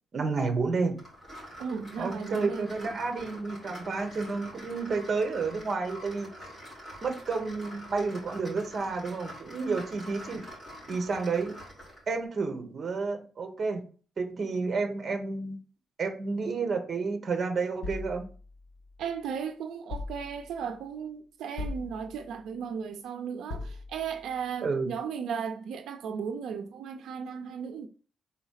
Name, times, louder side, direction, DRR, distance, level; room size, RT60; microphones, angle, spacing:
voice 1, 0.1-1.0 2.0-6.3 7.0-10.4 10.9-11.6 12.1-13.9 14.2-15.6 16.0-18.3 24.6-24.9, right 4 dB, 35° right, 1.1 m, -30 dB
sound 1, 1.0-12.1, equal, 20° left, 3.0 m, -46 dB
voice 2, 1.6-2.9 19.0-27.9, right 6 dB, 85° right, 0.5 m, -36 dB
sound 2, 17.8-19.2 19.9-20.7 21.6-22.5 23.5-24.3, left 3 dB, 65° left, 1.5 m, -40 dB
4.5 x 3.9 x 5.7 m
wide cardioid pair, 175°, 0 cm